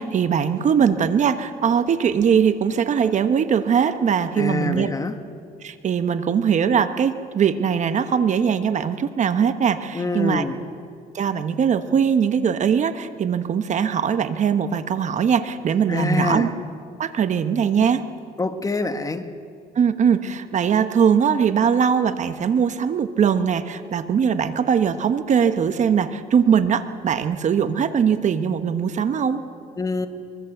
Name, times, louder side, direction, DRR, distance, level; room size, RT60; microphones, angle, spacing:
voice 1, 0.0-4.9 5.6-10.5 11.1-16.5 17.0-18.0 19.7-29.4, right 7 dB, 45° right, 10 dB, 1.2 m, -21 dB
voice 2, 4.3-5.2 9.9-10.6 15.9-16.5 18.4-19.3 29.8-30.1, left 3 dB, 20° left, 8 dB, 1.4 m, -25 dB
23.0 x 22.5 x 7.9 m, 2.4 s
cardioid pair, 110°, 17 cm